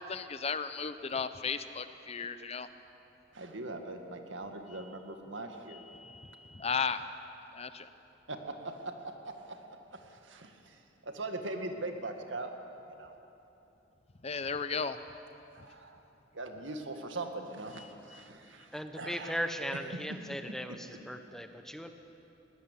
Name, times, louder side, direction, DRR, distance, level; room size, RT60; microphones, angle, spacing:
voice 1, 0.0-2.7 6.0-6.2 6.5-7.0 7.6-7.8 14.2-15.0, left 5 dB, 35° left, 12 dB, 0.7 m, -34 dB
voice 2, 3.3-5.8 8.3-8.9 9.2-9.6 9.9-12.5 12.9-13.2 15.5-16.0 16.3-19.4 20.9-21.0, right 2 dB, 80° right, 5 dB, 2.0 m, -41 dB
voice 3, 18.7-21.9, equal, ahead, 7 dB, 1.0 m, -38 dB
20.5 x 19.0 x 8.4 m, 2.9 s
head